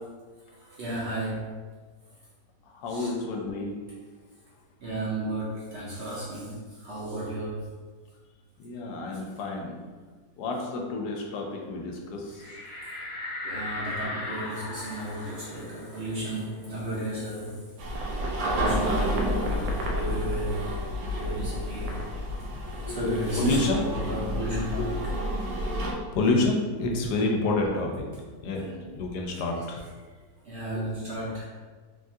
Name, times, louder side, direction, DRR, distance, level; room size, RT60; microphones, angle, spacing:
voice 1, 0.6-1.5 2.9-3.1 4.8-7.7 12.4-12.6 13.4-17.6 18.5-20.7 21.1-22.0 22.9-25.0 28.6-28.9 30.4-31.5, right 1 dB, 65° right, -6 dB, 0.7 m, -33 dB
voice 2, 2.7-3.8 8.6-9.8 10.4-12.4 22.4-23.9 24.5-24.9 26.1-28.6 28.9-29.8 30.7-30.8, left 2 dB, 90° left, 0 dB, 1.1 m, -29 dB
sound 1, 12.4-17.6 17.9-18.0 18.4-20.0, left 2 dB, 70° left, 1.0 m, -39 dB
sound 2, 17.8-25.9, equal, 85° right, 1.1 m, -30 dB
3.3 x 2.3 x 2.6 m, 1.4 s
omnidirectional pair, 1.6 m